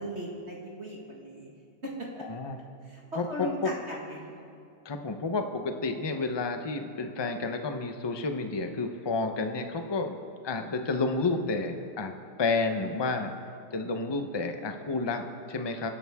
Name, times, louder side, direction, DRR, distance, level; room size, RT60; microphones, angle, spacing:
voice 1, 0.0-1.5 1.8-2.2 2.8-4.4, equal, 40° right, -3 dB, 2.1 m, -38 dB
voice 2, 2.2-2.6 3.2-3.7 4.8-10.2 10.4-13.3 13.7-15.9, left 3 dB, 25° left, 6 dB, 0.5 m, -30 dB
26.5 x 11.0 x 3.6 m, 2.5 s
omnidirectional pair, 1.9 m